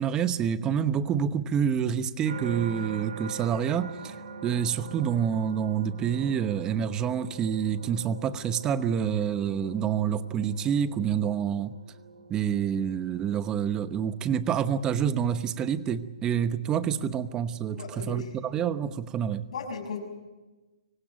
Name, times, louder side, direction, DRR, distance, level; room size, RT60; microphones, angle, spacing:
voice 1, 0.0-4.2 4.4-11.7 12.3-19.5, right 8 dB, 20° right, 13 dB, 1.0 m, -27 dB
sound 1, 2.2-17.4 18.0-18.4, right 5 dB, 70° right, 2.7 m, -44 dB
voice 2, 17.7-18.4 19.5-20.0, left 5 dB, 65° left, 5 dB, 6.4 m, -36 dB
24.5 x 16.0 x 9.4 m, 1.2 s
hypercardioid pair, 140°, 4 cm